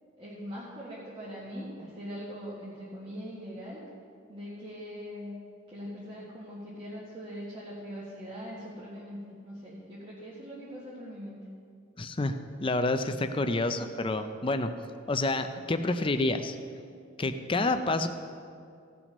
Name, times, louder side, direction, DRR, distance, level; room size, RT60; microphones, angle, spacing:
voice 1, 0.2-3.8 4.3-5.4 5.7-11.4, equal, 25° right, -8 dB, 1.7 m, -41 dB
voice 2, 12.0-14.7 15.1-16.6 17.2-18.1, left 2 dB, 25° left, 9 dB, 0.5 m, -28 dB
16.5 x 6.0 x 5.4 m, 2.3 s
head